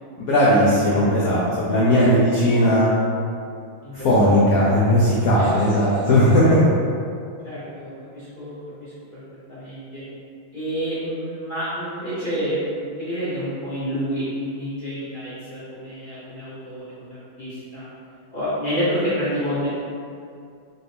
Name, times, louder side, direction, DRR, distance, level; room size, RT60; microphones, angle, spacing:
voice 1, 0.2-2.9 4.0-6.6, equal, 80° left, -7 dB, 0.7 m, -17 dB
voice 2, 1.7-2.3 3.8-4.4 5.4-6.0 6.4-6.5 7.4-9.2 9.5-10.0 10.5-17.9 18.3-19.7, equal, 45° left, -12 dB, 0.6 m, -29 dB
4.2 x 2.6 x 3.3 m, 2.4 s
omnidirectional pair, 2.3 m